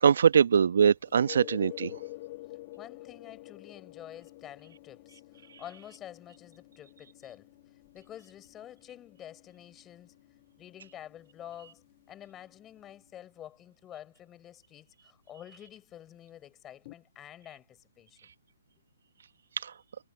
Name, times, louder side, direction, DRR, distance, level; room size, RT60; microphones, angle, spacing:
voice 1, 0.0-1.9 19.6-19.7, right 7 dB, 65° right, 1.4 m, -22 dB
sound 1, 1.0-12.6 16.9-17.0, left 18 dB, 35° left, 2.2 m, -48 dB
voice 2, 2.8-7.5 7.9-10.2 10.6-18.2, left 11 dB, 20° left, 5.4 m, -49 dB
hypercardioid pair, 135°, 0 cm